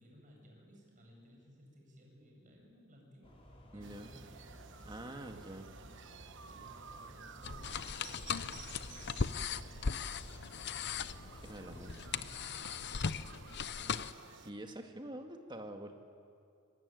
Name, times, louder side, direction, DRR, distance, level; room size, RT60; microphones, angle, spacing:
voice 1, 0.0-3.4 3.7-4.5 6.5-12.3 12.6-14.0, equal, 40° right, 0 dB, 7.5 m, -60 dB
sound 1, 3.2-12.5, equal, 30° left, 4.9 m, -56 dB
voice 2, 3.7-4.1 4.8-5.7 11.4-11.9 12.4-12.8 14.4-16.0, right 1 dB, 20° right, 4 dB, 2.0 m, -46 dB
sound 2, 3.8-14.5, right 6 dB, 60° right, 1.1 m, -54 dB
sound 3, 7.4-14.1, left 5 dB, 55° left, 0.7 m, -38 dB
25.0 x 23.0 x 9.4 m, 2.4 s
head